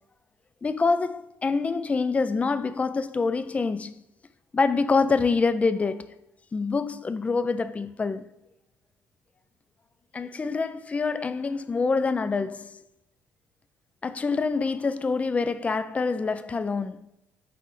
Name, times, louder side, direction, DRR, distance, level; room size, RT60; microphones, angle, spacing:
voice 1, 0.6-3.9 4.5-6.1 6.5-8.3 10.1-12.8 14.0-17.0, left 4 dB, 25° left, 0.4 m, -26 dB
7.8 x 4.3 x 3.1 m
cardioid pair, 85°, 6 cm